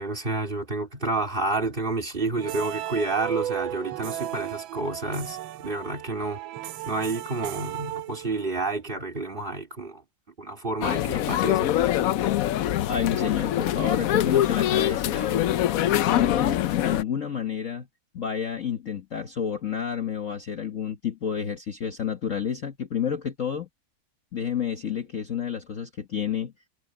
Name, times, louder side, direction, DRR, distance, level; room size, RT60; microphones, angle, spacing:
voice 1, 0.0-6.4 6.8-10.0 10.4-11.7, right 3 dB, 25° right, 3.1 m, -29 dB
sound 1, 2.4-8.6, right 13 dB, 85° right, 1.5 m, -35 dB
sound 2, 10.8-17.0, left 12 dB, 80° left, 0.7 m, -24 dB
voice 2, 12.9-15.5 16.1-17.9 18.1-23.7 24.3-26.5, left 8 dB, 45° left, 1.4 m, -29 dB
omnidirectional pair, 2.2 m